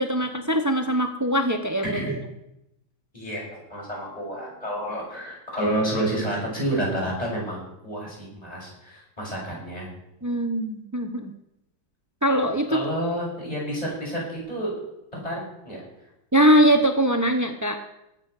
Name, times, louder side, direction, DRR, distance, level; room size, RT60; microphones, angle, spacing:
voice 1, 0.0-2.2 10.2-11.3 12.2-12.8 16.3-17.8, equal, 25° right, 5 dB, 0.4 m, -22 dB
voice 2, 3.1-9.9 12.7-14.7 15.1-15.8, right 1 dB, 20° left, -4 dB, 6.9 m, -29 dB
19.0 x 8.5 x 6.8 m, 0.86 s
omnidirectional pair, 2.0 m